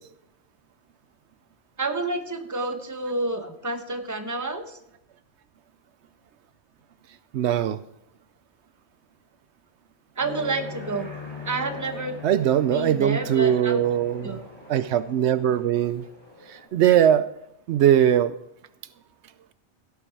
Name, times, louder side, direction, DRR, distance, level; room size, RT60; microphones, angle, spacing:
voice 1, 1.8-4.8 10.2-11.1 11.4-12.2 12.7-13.8 14.2-14.4, right 2 dB, 15° right, 7 dB, 1.0 m, -29 dB
voice 2, 7.3-7.8 12.2-14.4 14.7-16.0 16.5-17.3 17.7-18.3, right 10 dB, 80° right, 13 dB, 0.8 m, -21 dB
Aircraft, 10.2-16.7, left 3 dB, 25° left, 5.6 m, -41 dB
16.0 x 7.1 x 4.7 m, 0.79 s
omnidirectional pair, 1.1 m